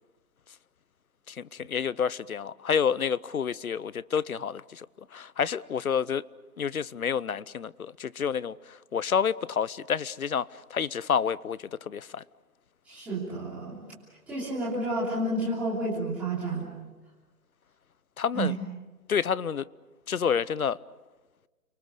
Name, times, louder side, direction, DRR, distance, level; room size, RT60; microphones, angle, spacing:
voice 1, 1.3-4.9 5.1-6.2 6.6-8.5 8.9-11.6 11.9-12.2 18.2-18.5 19.1-19.6 20.1-20.8, left 7 dB, 65° left, 0.8 m, -29 dB
voice 2, 12.9-13.8 14.3-16.7 18.3-18.5, right 2 dB, 5° right, 3.1 m, -30 dB
30.0 x 23.5 x 6.6 m
hypercardioid pair, 175°, 46 cm